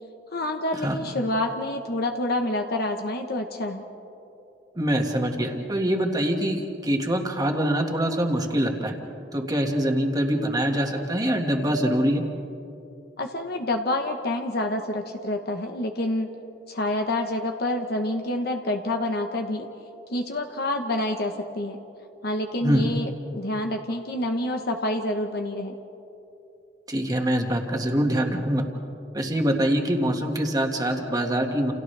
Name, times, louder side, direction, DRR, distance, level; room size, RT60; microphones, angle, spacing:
voice 1, 0.3-3.8 13.2-16.3 16.7-19.7 20.1-21.8 22.2-25.7, left 1 dB, 60° left, 4 dB, 1.1 m, -27 dB
voice 2, 4.8-9.0 9.3-12.2 22.6-22.9 26.9-28.6 29.1-31.7, equal, 20° right, 2 dB, 1.9 m, -24 dB
29.5 x 29.0 x 3.4 m, 2.8 s
head